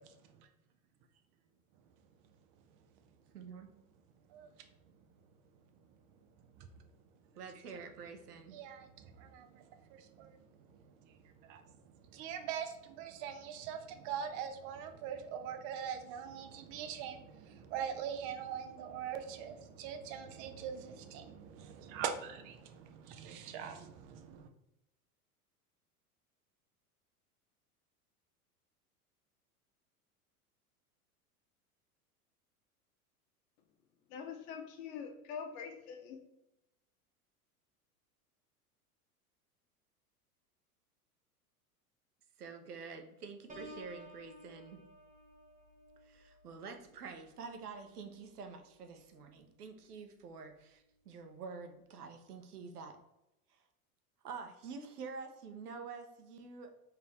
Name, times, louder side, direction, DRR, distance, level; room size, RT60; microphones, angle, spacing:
voice 1, 3.3-3.7 7.4-8.6 42.4-44.8 46.0-53.0 53.5-53.6 54.2-56.7, right 5 dB, 80° right, 6 dB, 0.7 m, -48 dB
voice 2, 8.5-9.6 9.9-10.4 11.4-11.6 12.1-24.5, right 8 dB, 35° right, 8 dB, 0.4 m, -42 dB
voice 3, 34.1-36.2, left 6 dB, 50° left, 4 dB, 0.9 m, -44 dB
Piano, 43.5-49.1 49.6-49.9, right 1 dB, 15° right, 0.8 m, -56 dB
3.8 x 2.8 x 3.0 m, 0.89 s
figure-of-eight pair, 90°, 45 cm